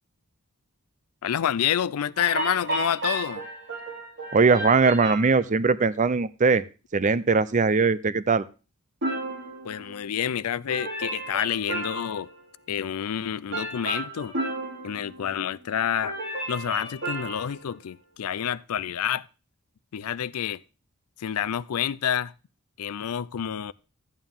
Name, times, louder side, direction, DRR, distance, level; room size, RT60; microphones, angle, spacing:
voice 1, 1.2-3.5 9.6-12.3 12.7-14.3 14.8-16.2 16.5-19.2 19.9-20.6 21.2-22.3 22.8-23.7, left 9 dB, 80° left, 0.4 m, -28 dB
sound 1, 2.2-5.4 9.0-10.4 10.7-12.3 13.5-15.7 16.0-17.7, right 1 dB, 50° right, 4.7 m, -33 dB
voice 2, 4.3-6.6 6.9-8.5, right 4 dB, 35° right, 0.5 m, -20 dB
12.5 x 9.0 x 3.7 m
head